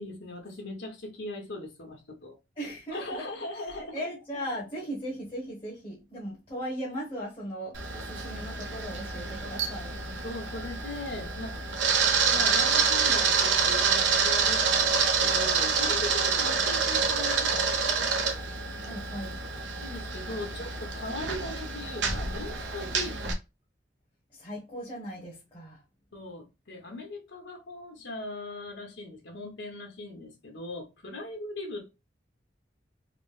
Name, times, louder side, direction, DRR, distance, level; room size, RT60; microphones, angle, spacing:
voice 1, 0.0-2.4 2.9-4.0 10.2-11.6 12.3-18.1 19.8-23.3 26.1-31.9, left 2 dB, 80° left, 1.3 m, -39 dB
voice 2, 2.6-3.3 3.8-9.9 18.8-19.4 24.3-25.8, equal, 30° left, 1.2 m, -38 dB
Camera, 7.7-23.3, right 5 dB, 85° right, 0.8 m, -27 dB
4.1 x 2.1 x 3.3 m
head